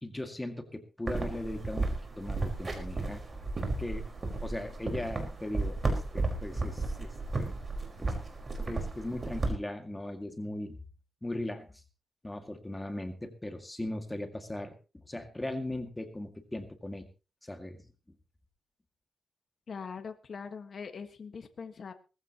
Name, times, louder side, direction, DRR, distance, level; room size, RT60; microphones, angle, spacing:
voice 1, 0.0-3.2 3.8-4.1 4.4-7.5 8.0-8.1 8.7-10.8 11.2-11.8 12.2-14.7 15.1-17.1 17.4-17.8, left 1 dB, 15° left, 6 dB, 2.1 m, -38 dB
sound 1, 1.1-9.5, right 3 dB, 35° right, 4.7 m, -34 dB
voice 2, 19.7-21.9, left 5 dB, 55° left, 8 dB, 1.5 m, -42 dB
19.5 x 15.0 x 3.0 m, 0.32 s
cardioid pair, 105°, 0 cm